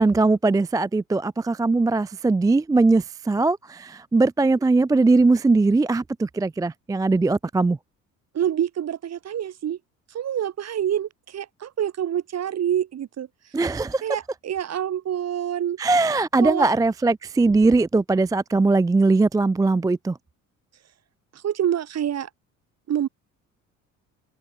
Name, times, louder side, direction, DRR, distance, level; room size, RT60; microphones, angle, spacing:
voice 1, 0.0-7.8 13.5-14.2 15.8-20.2, right 3 dB, 10° right, 0.5 m, -20 dB
voice 2, 8.3-9.8 10.1-13.3 14.0-15.8 16.4-16.7 21.4-22.3 22.9-23.1, right 10 dB, 40° right, 1.7 m, -26 dB
figure-of-eight pair, 55°, 40 cm